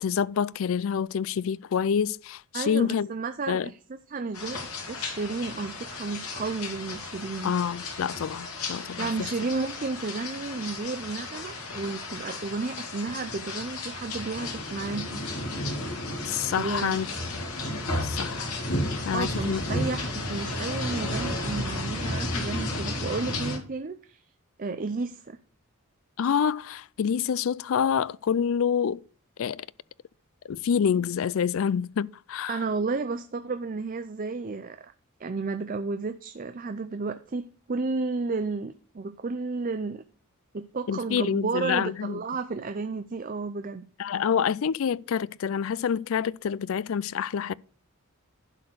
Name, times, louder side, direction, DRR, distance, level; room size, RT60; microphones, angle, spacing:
voice 1, 0.0-3.1 3.5-3.7 7.4-9.3 16.3-17.1 18.0-18.5 19.0-19.9 26.2-29.0 29.4-29.7 30.5-32.6 40.9-42.2 44.0-47.5, left 7 dB, 65° left, 0.3 m, -27 dB
voice 2, 2.5-3.8 4.1-7.5 9.0-15.2 16.6-17.0 19.1-24.2 24.6-25.4 32.5-34.9 35.2-40.0 40.5-43.9, right 4 dB, 40° right, 0.5 m, -32 dB
sound 1, 4.3-23.6, left 1 dB, 85° left, 2.7 m, -33 dB
11.5 x 4.4 x 6.7 m
head